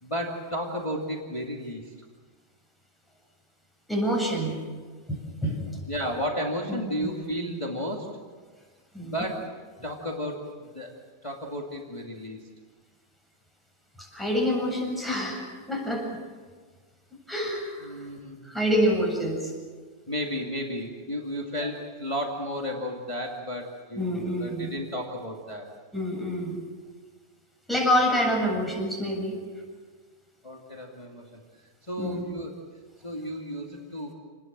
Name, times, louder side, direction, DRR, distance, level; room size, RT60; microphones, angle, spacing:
voice 1, 0.0-1.9 5.4-5.5 5.9-8.1 9.0-9.4 9.8-10.4 10.7-10.9 11.2-12.4 17.8-18.4 20.1-25.7 30.4-31.4 31.8-32.6 33.0-34.1, equal, 15° left, 0 dB, 2.4 m, -33 dB
voice 2, 3.9-4.5 5.1-5.8 6.7-7.2 8.9-9.2 14.0-16.1 17.3-18.1 18.4-19.5 21.6-21.7 24.0-24.7 25.9-26.6 27.7-29.4 32.0-32.2, equal, ahead, -1 dB, 7.8 m, -27 dB
29.5 x 20.0 x 7.5 m, 1.5 s
omnidirectional pair, 1.9 m